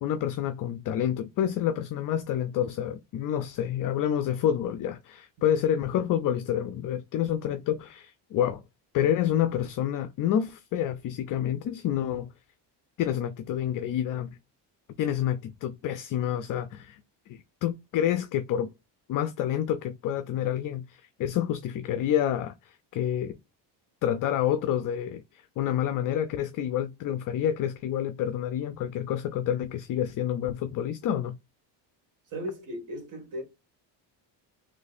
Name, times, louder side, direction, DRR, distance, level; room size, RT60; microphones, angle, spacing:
voice 1, 0.0-8.6 8.9-12.3 13.0-14.3 15.0-17.0 17.3-18.7 19.1-23.4 24.0-31.4, left 10 dB, 50° left, 0.5 m, -28 dB
voice 2, 32.3-33.4, equal, 45° right, 1.8 m, -36 dB
3.3 x 3.2 x 4.1 m
cardioid pair, 145°, 42 cm